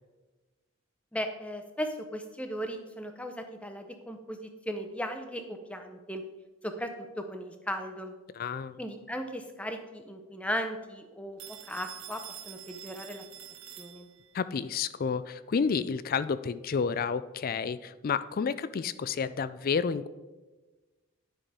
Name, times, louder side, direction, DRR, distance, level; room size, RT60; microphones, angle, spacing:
voice 1, 1.1-6.2 6.6-8.1 8.8-11.4 11.7-13.3 13.8-14.1, equal, 5° left, 6 dB, 0.7 m, -37 dB
voice 2, 8.4-8.8 14.3-20.1, left 6 dB, 40° left, 15 dB, 0.3 m, -30 dB
Telephone, 11.4-14.4, right 10 dB, 65° right, 1.1 m, -46 dB
10.0 x 5.9 x 4.8 m, 1.2 s
head